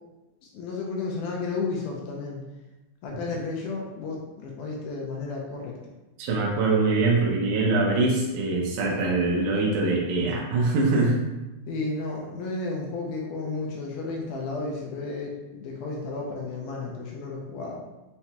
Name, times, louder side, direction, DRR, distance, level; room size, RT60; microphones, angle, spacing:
voice 1, 0.5-2.4 3.0-5.8 11.7-17.8, left 3 dB, 85° left, -1 dB, 1.8 m, -32 dB
voice 2, 6.2-11.2, right 3 dB, 80° right, -2 dB, 1.8 m, -23 dB
5.8 x 2.2 x 2.8 m, 1.1 s
omnidirectional pair, 4.2 m